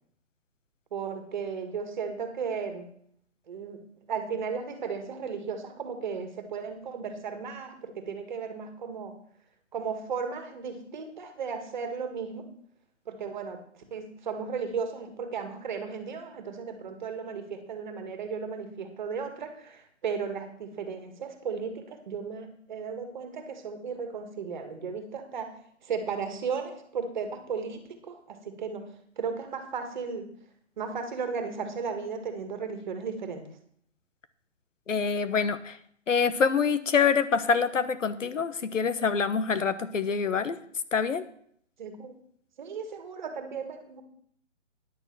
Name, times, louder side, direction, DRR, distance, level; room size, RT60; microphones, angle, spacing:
voice 1, 0.9-2.9 3.5-3.8 4.1-9.1 9.7-12.4 13.1-25.5 25.8-28.8 29.2-30.3 30.8-33.4 41.8-42.1 42.6-44.0, right 5 dB, 40° right, 6 dB, 1.9 m, -35 dB
voice 2, 34.9-35.8 36.1-40.6 40.9-41.2, left 6 dB, 85° left, 12 dB, 1.2 m, -26 dB
10.0 x 6.7 x 7.6 m, 0.63 s
hypercardioid pair, 165°, 37 cm